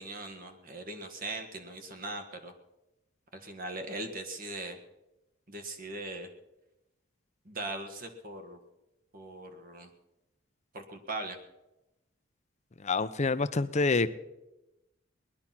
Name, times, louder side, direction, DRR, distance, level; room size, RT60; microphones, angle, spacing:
voice 1, 0.0-2.5 3.4-4.8 5.5-6.3 7.4-8.6 9.1-9.9 10.7-11.4, right 2 dB, 45° right, 6 dB, 1.7 m, -40 dB
voice 2, 12.8-14.1, left 3 dB, 35° left, 13 dB, 0.6 m, -27 dB
19.5 x 11.0 x 5.9 m, 0.97 s
head